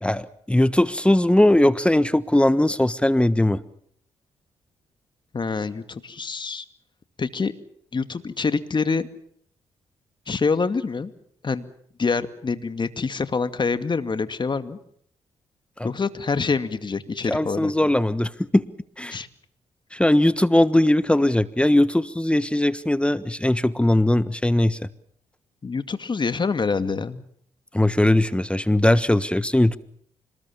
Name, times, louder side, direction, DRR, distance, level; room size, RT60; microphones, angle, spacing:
voice 1, 0.0-3.6 15.8-15.9 17.3-18.7 19.0-19.2 19.9-24.9 27.7-29.8, left 1 dB, 10° left, 15 dB, 1.3 m, -20 dB
voice 2, 5.3-6.6 7.2-7.5 7.9-9.1 10.3-11.1 11.4-11.7 12.0-14.8 15.8-17.7 19.1-19.3 25.6-27.2, left 4 dB, 40° left, 11 dB, 2.3 m, -26 dB
26.0 x 20.5 x 7.3 m, 0.65 s
supercardioid pair, 50°, 12 cm